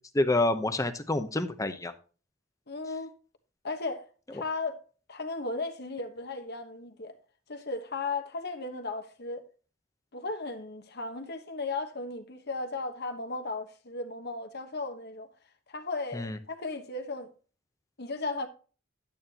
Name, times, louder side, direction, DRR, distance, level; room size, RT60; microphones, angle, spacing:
voice 1, 0.1-1.9 16.1-16.4, left 2 dB, 15° left, 0.8 m, -27 dB
voice 2, 2.7-3.1 3.6-4.8 5.1-7.2 7.5-9.4 10.1-15.3 15.7-17.3 18.0-18.5, left 3 dB, 55° left, 1.2 m, -35 dB
11.0 x 9.0 x 2.9 m
head